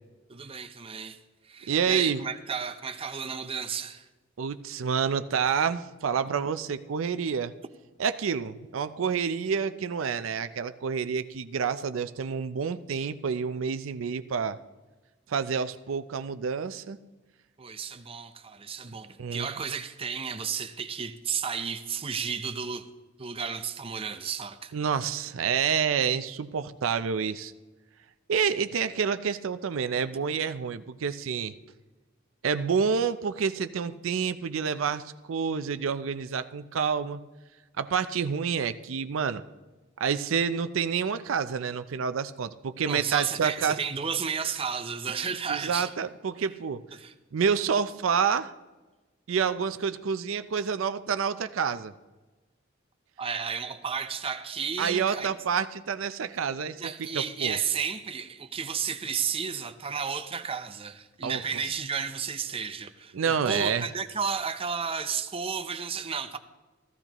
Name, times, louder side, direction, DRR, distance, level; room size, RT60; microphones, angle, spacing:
voice 1, 0.3-1.2 1.4-4.1 17.6-22.9 23.2-24.7 42.9-45.9 46.9-47.1 53.2-55.3 56.8-66.4, right 6 dB, 30° right, 0.6 m, -33 dB
voice 2, 1.7-2.2 4.4-7.5 8.0-14.6 15.3-17.0 19.2-19.5 24.7-27.5 28.3-31.5 32.4-37.2 37.8-39.4 40.0-43.8 45.5-46.8 47.3-48.5 49.3-51.9 54.8-57.6 61.2-61.8 63.1-63.9, right 6 dB, 85° right, 0.5 m, -28 dB
15.0 x 14.5 x 3.0 m
head